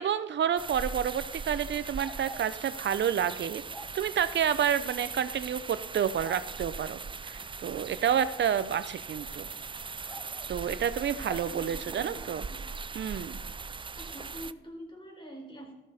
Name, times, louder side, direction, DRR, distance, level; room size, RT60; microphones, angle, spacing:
voice 1, 0.0-3.6 3.9-9.5 10.5-12.5 12.9-13.4, right 8 dB, 65° right, 14 dB, 0.7 m, -29 dB
sound 1, 0.6-14.5, right 4 dB, 25° right, 0.5 m, -40 dB
sound 2, 2.0-2.5 3.7-3.9 5.2-5.3 6.2-6.4 8.1-8.4 10.1-10.5 11.2-11.5, equal, 5° left, 1.6 m, -45 dB
voice 2, 11.1-12.6 14.0-15.7, equal, 25° left, 1 dB, 5.0 m, -45 dB
14.0 x 13.5 x 4.3 m, 1.0 s
supercardioid pair, 50°, 20 cm